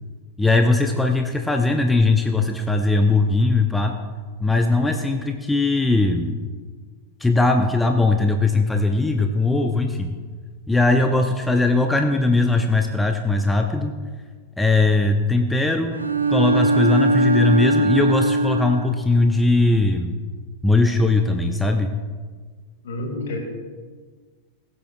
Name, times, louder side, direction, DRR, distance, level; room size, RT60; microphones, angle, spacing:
voice 1, 0.4-4.0 4.4-6.4 7.2-10.2 10.7-14.0 14.6-16.0 16.3-20.2 20.6-22.0, left 2 dB, 5° left, 5 dB, 0.6 m, -19 dB
Bowed string instrument, 15.9-19.1, right 1 dB, 80° right, 0.8 m, -20 dB
voice 2, 22.8-23.4, left 2 dB, 60° left, 3 dB, 2.0 m, -29 dB
20.5 x 8.4 x 2.2 m, 1.5 s
figure-of-eight pair, 90°, 0 cm